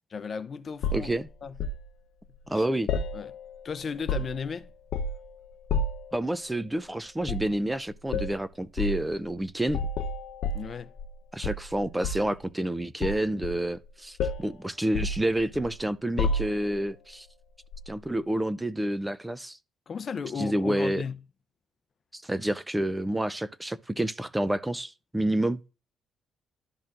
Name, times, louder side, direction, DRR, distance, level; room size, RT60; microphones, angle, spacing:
voice 1, 0.1-1.1 1.4-1.6 2.5-2.6 3.1-3.3 3.6-4.7 10.5-10.9 19.9-21.2, left 6 dB, 45° left, 0.6 m, -35 dB
sound 1, 0.8-1.8 2.9-3.6 3.9-4.5 4.9-5.3 5.7-6.1 7.2-7.5 8.1-8.3 8.8-9.0 9.7-11.1 11.4-12.4 13.0-13.9 14.2-14.5 14.9-15.8 16.2-16.8 17.7-17.9, left 3 dB, 80° left, 0.8 m, -30 dB
voice 2, 0.9-1.3 2.5-2.9 6.1-9.8 11.3-17.3 17.9-19.6 20.4-21.0 22.1-25.6, right 1 dB, 10° right, 0.5 m, -29 dB
12.0 x 4.3 x 2.5 m
cardioid pair, 90°, 0 cm